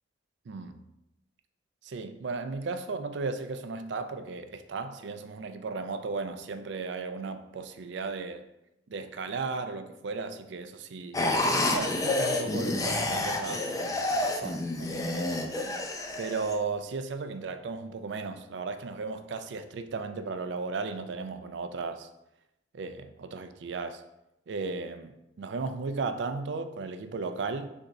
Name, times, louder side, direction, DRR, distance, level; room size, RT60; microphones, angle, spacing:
voice 1, 0.5-0.9 1.8-8.4 8.9-11.3 11.7-15.5 16.2-22.1 22.7-24.0 24.5-27.7, right 4 dB, 65° right, 0.4 m, -35 dB
sound 1, 11.1-16.5, left 2 dB, 20° left, 0.4 m, -29 dB
3.8 x 3.5 x 4.0 m
head